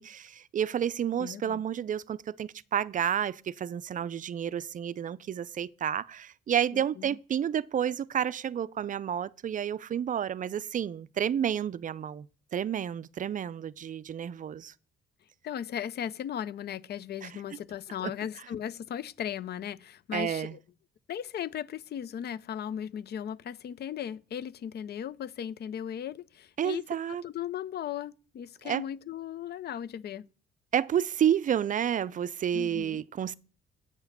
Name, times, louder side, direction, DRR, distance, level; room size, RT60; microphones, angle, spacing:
voice 1, 0.0-12.3 12.5-14.7 17.2-17.3 18.0-18.1 20.1-20.6 26.6-27.2 28.6-28.8 30.7-33.3, right 9 dB, 40° right, 0.4 m, -30 dB
voice 2, 1.2-1.6 6.7-7.2 15.4-20.6 21.1-30.3 32.5-33.0, left 9 dB, 55° left, 0.5 m, -37 dB
8.4 x 4.8 x 6.7 m
cardioid pair, 90°, 20 cm